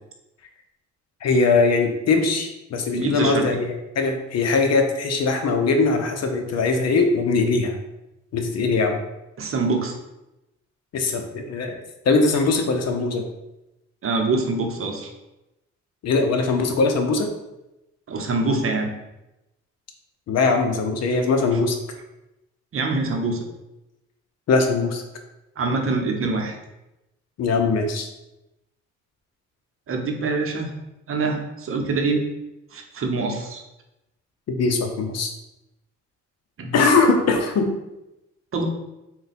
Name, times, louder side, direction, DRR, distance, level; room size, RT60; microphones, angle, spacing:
voice 1, 1.2-7.8 8.3-9.0 10.9-11.7 12.0-13.2 16.0-17.3 20.3-21.8 24.5-25.0 27.4-28.1 34.5-35.3 36.7-37.7, left 3 dB, 60° left, 5 dB, 0.7 m, -21 dB
voice 2, 2.9-3.4 9.4-10.0 14.0-15.1 18.1-18.9 22.7-23.4 25.6-26.5 29.9-30.7 31.1-32.3 32.7-33.6 36.6-36.8 38.5-38.6, right 3 dB, 45° right, 3 dB, 0.7 m, -24 dB
3.9 x 2.2 x 4.1 m, 0.93 s
cardioid pair, 90°, 30 cm